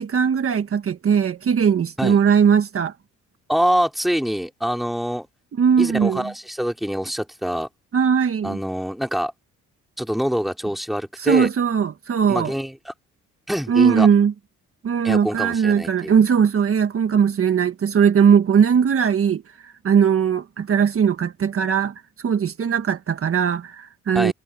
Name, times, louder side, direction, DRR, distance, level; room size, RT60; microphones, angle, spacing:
voice 1, 0.0-2.9 5.5-6.3 7.9-8.6 11.2-12.6 13.7-14.3 14.8-21.9 22.2-24.3, right 7 dB, 45° right, 1.5 m, -19 dB
voice 2, 3.5-5.3 5.8-7.7 8.4-9.3 10.0-11.5 12.3-12.9 13.5-14.1 15.0-16.1 24.1-24.3, equal, ahead, 3.0 m, -25 dB
cardioid pair, 90°, 30 cm